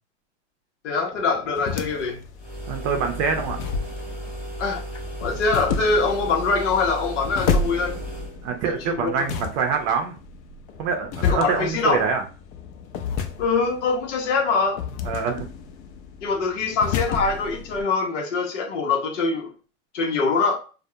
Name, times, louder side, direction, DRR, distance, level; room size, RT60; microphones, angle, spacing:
voice 1, 0.8-2.2 4.6-4.8 5.2-8.0 8.7-9.3 11.2-12.0 13.4-14.8 16.2-19.5 19.9-20.6, left 4 dB, 90° left, 0.7 m, -23 dB
sound 1, 1.1-17.8, left 5 dB, 50° left, 0.5 m, -31 dB
sound 2, 2.4-8.4, right 1 dB, 5° right, 1.0 m, -34 dB
voice 2, 2.7-3.6 8.4-10.2 10.8-12.3 15.1-15.5, right 6 dB, 50° right, 0.5 m, -25 dB
2.3 x 2.0 x 2.6 m
hypercardioid pair, 110°, 35 cm